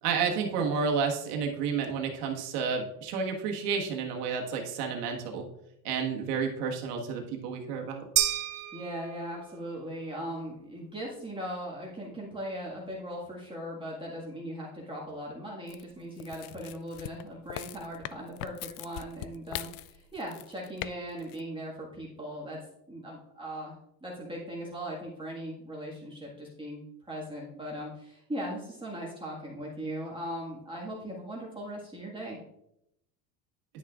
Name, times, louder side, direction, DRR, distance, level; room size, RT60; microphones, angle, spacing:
voice 1, 0.0-5.5 5.8-8.1, right 5 dB, 80° right, 1 dB, 1.6 m, -31 dB
sound 1, 8.2-9.6, right 11 dB, 35° right, 0.6 m, -30 dB
voice 2, 8.7-22.6 22.9-23.7 24.0-32.4, equal, 10° right, -5 dB, 1.7 m, -39 dB
sound 2, 15.7-20.9 21.2-21.4, left 15 dB, 60° left, 0.5 m, -41 dB
10.5 x 6.1 x 2.4 m, 0.80 s
supercardioid pair, 110°, 46 cm